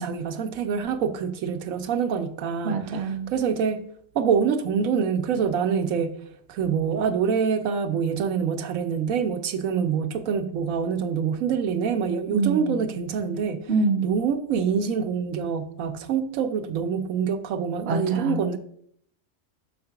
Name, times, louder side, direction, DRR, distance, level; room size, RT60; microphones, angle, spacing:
voice 1, 0.0-2.7 3.3-3.8 4.1-6.1 6.5-13.6 14.0-18.6, right 6 dB, 85° right, 1.0 m, -25 dB
voice 2, 2.6-3.3 12.3-12.8 13.7-14.2 17.9-18.4, right 3 dB, 55° right, 0.9 m, -25 dB
6.4 x 3.7 x 5.7 m
omnidirectional pair, 1.4 m